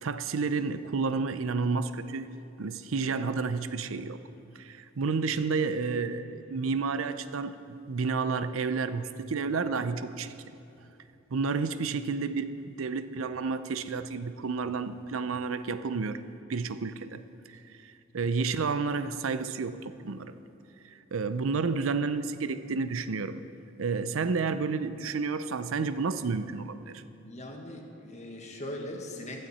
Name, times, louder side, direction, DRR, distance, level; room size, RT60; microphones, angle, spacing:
voice 1, 0.0-2.3 2.6-4.2 4.6-7.6 7.9-10.3 11.3-16.2 16.5-17.2 17.7-20.3 20.8-23.4 23.8-27.0, right 4 dB, 80° right, 12 dB, 0.6 m, -31 dB
voice 2, 27.1-29.5, left 1 dB, 35° left, 1 dB, 1.6 m, -40 dB
16.0 x 12.0 x 4.2 m, 2.9 s
head